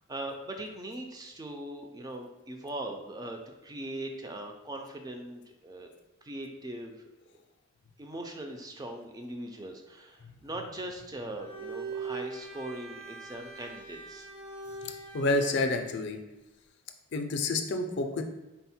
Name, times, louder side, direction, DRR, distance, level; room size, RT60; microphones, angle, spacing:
voice 1, 0.1-5.9 6.2-7.0 8.0-14.3, right 1 dB, 15° right, 3 dB, 0.3 m, -40 dB
Bowed string instrument, 11.2-15.7, right 4 dB, 80° right, 1.2 m, -42 dB
voice 2, 14.8-16.2 17.1-18.2, left 2 dB, 55° left, 5 dB, 0.4 m, -29 dB
4.2 x 2.1 x 4.1 m, 1.0 s
head